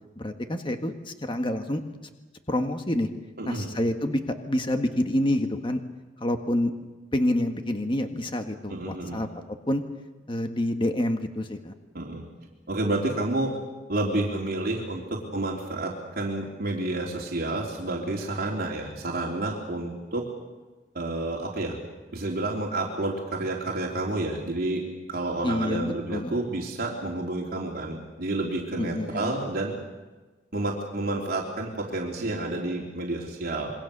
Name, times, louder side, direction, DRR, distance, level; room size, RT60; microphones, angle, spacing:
voice 1, 0.1-1.8 2.5-3.1 3.4-5.8 6.2-6.7 7.1-9.8 10.3-11.7 25.4-26.3 28.8-29.4, left 1 dB, 30° left, 6 dB, 1.6 m, -27 dB
voice 2, 3.4-3.7 8.7-9.2 11.9-12.3 12.7-13.5 13.9-20.3 20.9-21.8 22.1-24.8 25.1-29.8 30.5-33.7, right 2 dB, 55° right, -1 dB, 3.5 m, -30 dB
27.0 x 23.0 x 6.8 m, 1.2 s
head